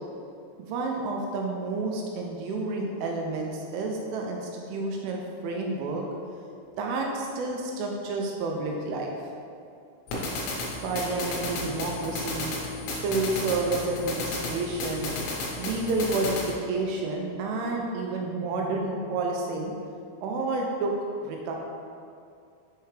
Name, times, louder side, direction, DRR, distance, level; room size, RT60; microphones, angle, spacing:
voice 1, 0.6-6.1 6.8-9.2 10.8-12.5 12.9-15.1 15.6-19.7 20.2-20.9 21.2-21.5, right 3 dB, 85° right, 0 dB, 2.9 m, -30 dB
sound 1, 10.1-16.5, left 2 dB, 80° left, 2.2 m, -33 dB
6.7 x 4.5 x 3.2 m, 2.4 s
omnidirectional pair, 5.8 m